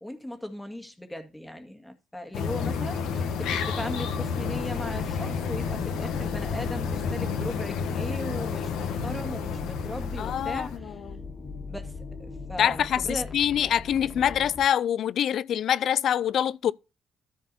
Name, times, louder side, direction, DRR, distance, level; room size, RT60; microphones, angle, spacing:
voice 1, 0.0-11.0 11.7-11.9 12.2-13.3, left 1 dB, 5° left, 1.9 m, -38 dB
sound 1, 2.3-10.8, left 6 dB, 90° left, 1.3 m, -30 dB
sound 2, 4.3-14.7, left 4 dB, 30° left, 2.0 m, -40 dB
voice 2, 10.2-11.2 12.6-16.7, left 9 dB, 70° left, 0.4 m, -25 dB
13.5 x 4.6 x 4.1 m
cardioid pair, 90°, 0 cm